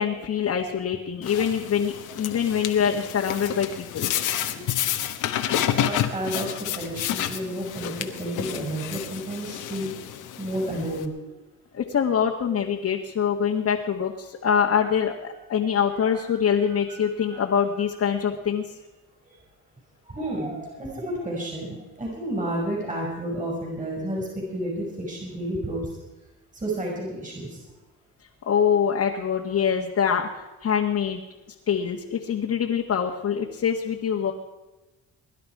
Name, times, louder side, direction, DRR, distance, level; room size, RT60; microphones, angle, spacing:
voice 1, 0.0-4.1 11.7-18.6 28.4-31.2 31.7-34.3, left 7 dB, 55° left, 0 dB, 1.6 m, -24 dB
sound 1, 1.2-11.1, left 11 dB, 85° left, 1.3 m, -30 dB
voice 2, 5.3-6.5 6.7-9.9 10.4-11.1 16.0-17.5 19.2-19.4 20.1-25.9 26.5-27.6, right 1 dB, 25° right, -1 dB, 5.9 m, -31 dB
22.0 x 11.0 x 4.8 m, 1.1 s
cardioid pair, 90°, 30 cm